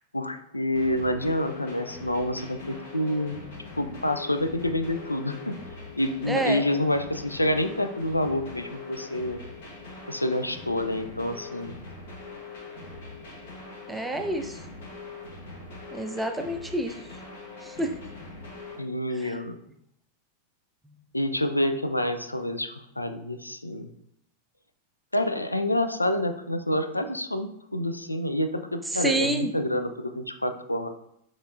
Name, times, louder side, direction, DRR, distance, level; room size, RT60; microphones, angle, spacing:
voice 1, 0.1-3.4 3.8-5.6 6.0-9.4 10.1-11.8 18.8-19.6 21.1-23.9 25.1-30.9, left 1 dB, 85° left, 9 dB, 0.3 m, -28 dB
sound 1, 0.7-18.7, left 3 dB, 60° left, 1.1 m, -42 dB
voice 2, 6.3-6.7 13.9-14.6 15.9-17.0 17.6-17.9 19.2-19.4 28.9-29.5, right 2 dB, 5° right, 5 dB, 0.4 m, -28 dB
6.1 x 3.1 x 2.5 m, 0.74 s
figure-of-eight pair, 90°, 0 cm